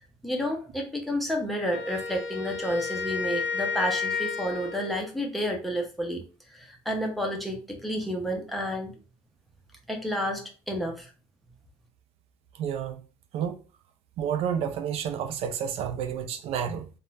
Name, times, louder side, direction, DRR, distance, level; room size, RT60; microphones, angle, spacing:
voice 1, 0.2-6.2 6.5-8.9 9.9-11.1, equal, ahead, 0.5 m, -30 dB
Wind instrument woodwind instrument, 1.7-5.1, left 5 dB, 60° left, 0.6 m, -32 dB
voice 2, 12.6-13.0 13.3-13.6 14.2-16.9, right 8 dB, 50° right, 0.4 m, -30 dB
2.4 x 2.1 x 3.0 m
cardioid pair, 160°, 13 cm